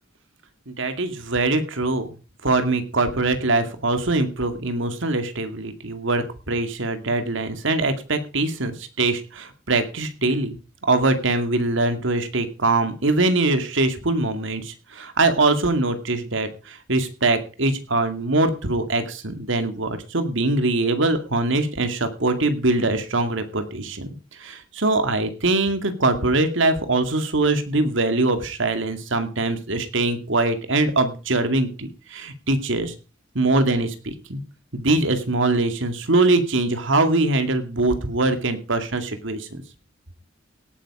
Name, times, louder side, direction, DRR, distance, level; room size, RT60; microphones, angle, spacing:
voice 1, 0.7-2.1 2.4-10.6 10.8-24.1 24.4-32.9 33.3-34.4 34.7-39.6, right 2 dB, 70° right, 8 dB, 2.3 m, -22 dB
18.0 x 9.2 x 4.9 m, 0.34 s
head